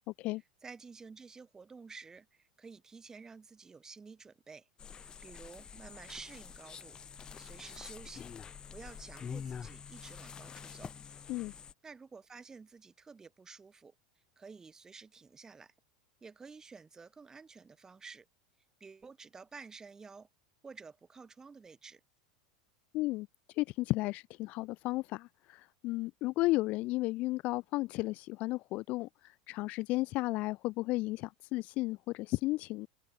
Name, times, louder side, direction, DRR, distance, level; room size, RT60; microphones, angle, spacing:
voice 1, 0.6-4.7 5.0-7.0 7.4-8.3 8.7-10.9 11.8-13.9 14.4-15.7 16.2-18.3 18.8-20.3 20.6-22.0, right 5 dB, 15° right, 5.6 m, -51 dB
sound 1, 4.8-11.7, left 7 dB, 25° left, 1.1 m, -46 dB
voice 2, 22.9-23.3 23.6-32.9, left 20 dB, 45° left, 0.4 m, -33 dB
open air
figure-of-eight pair, 80°, 3 cm